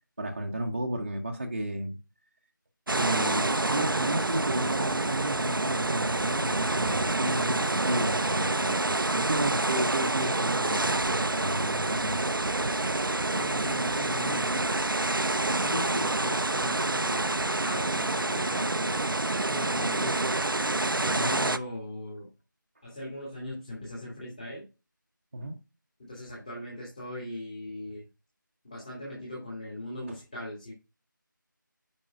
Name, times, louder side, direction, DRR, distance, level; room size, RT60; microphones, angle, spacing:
voice 1, 0.2-2.0 2.9-12.2 21.1-21.4 25.3-25.6 30.1-30.2, right 1 dB, 35° right, 0.9 m, -33 dB
sound 1, 2.9-21.6, right 2 dB, 80° right, 0.6 m, -27 dB
voice 2, 13.3-14.7 15.5-19.0 19.5-20.5 21.0-22.3 22.8-24.7 26.0-28.1 28.6-30.7, left 1 dB, 20° left, 2.5 m, -39 dB
9.4 x 5.3 x 2.4 m
figure-of-eight pair, 165°, 11 cm